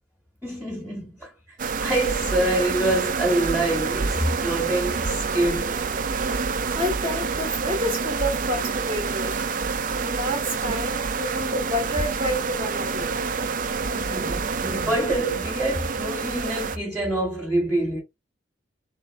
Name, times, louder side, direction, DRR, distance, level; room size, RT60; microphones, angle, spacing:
voice 1, 0.4-1.3 1.8-5.8 13.9-18.0, right 1 dB, 5° right, 1.3 m, -26 dB
sound 1, 1.6-16.8, right 4 dB, 45° right, 0.4 m, -27 dB
voice 2, 6.4-9.4 9.9-13.1, left 1 dB, 30° right, 1.1 m, -29 dB
3.9 x 3.1 x 3.4 m
head